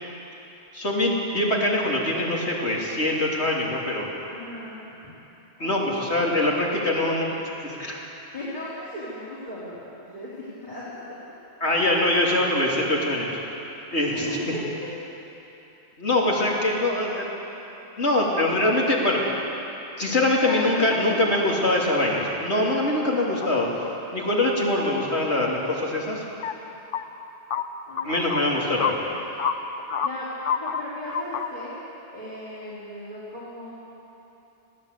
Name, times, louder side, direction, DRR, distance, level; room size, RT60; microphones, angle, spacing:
voice 1, 0.7-4.1 5.6-7.3 7.6-8.0 11.6-13.3 13.9-14.1 16.0-17.2 18.0-19.2 20.0-23.7 24.1-26.2 28.0-28.9, left 1 dB, 65° left, -3 dB, 3.5 m, -23 dB
voice 2, 4.3-5.1 5.6-6.3 8.3-11.2 14.1-14.9 20.4-21.7 22.8-23.3 27.9-29.2 30.0-30.3 30.5-31.8 32.1-33.7, left 1 dB, 40° left, -10 dB, 4.0 m, -36 dB
sound 1, 23.4-23.5 24.3-24.4 25.0-25.1 26.3-26.5 26.9-27.0 27.5-27.6 28.0-28.5 28.8-28.9 29.2-30.1 30.4-30.8 31.1-31.5, left 7 dB, 85° left, 1.2 m, -27 dB
21.0 x 16.5 x 8.2 m, 3.0 s
omnidirectional pair, 1.2 m